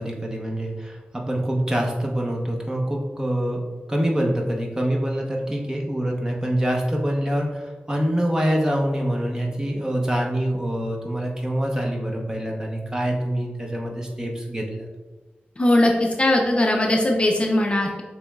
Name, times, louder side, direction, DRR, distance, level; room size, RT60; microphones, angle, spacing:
voice 1, 0.0-3.6 3.9-14.9, right 1 dB, 20° right, 0 dB, 0.8 m, -25 dB
voice 2, 15.6-18.0, left 1 dB, 30° left, 1 dB, 0.5 m, -20 dB
6.8 x 3.1 x 2.3 m, 1.3 s
wide cardioid pair, 80°, 4 cm